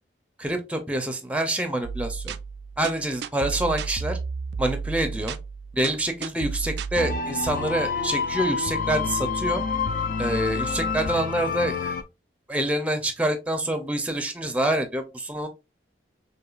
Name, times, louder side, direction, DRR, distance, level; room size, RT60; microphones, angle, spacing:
voice 1, 0.4-2.3 2.8-4.2 4.6-5.4 5.7-9.6 10.2-11.9 12.5-15.5, right 1 dB, 5° right, 0.5 m, -26 dB
sound 1, 1.8-7.2, right 5 dB, 65° right, 0.3 m, -32 dB
sound 2, 7.0-12.0, left 5 dB, 45° left, 0.4 m, -28 dB
4.7 x 2.7 x 2.4 m
head